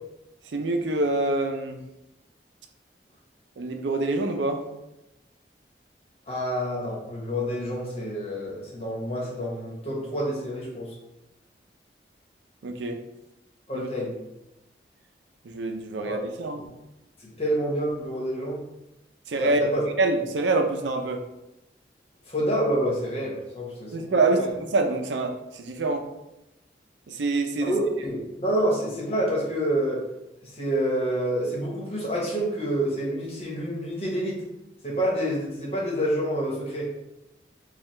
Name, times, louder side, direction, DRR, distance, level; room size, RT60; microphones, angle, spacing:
voice 1, 0.5-1.8 3.6-4.6 12.6-13.0 13.7-13.9 15.5-16.6 19.3-19.6 20.0-21.2 23.9-26.0 27.1-27.7, right 2 dB, 90° right, 5 dB, 0.5 m, -26 dB
voice 2, 6.3-10.9 13.7-14.1 16.0-16.2 17.2-18.6 19.4-19.8 22.3-24.5 27.6-30.0 30.4-34.4 34.8-36.9, equal, 35° left, -3 dB, 1.1 m, -28 dB
4.5 x 2.3 x 3.2 m, 0.92 s
head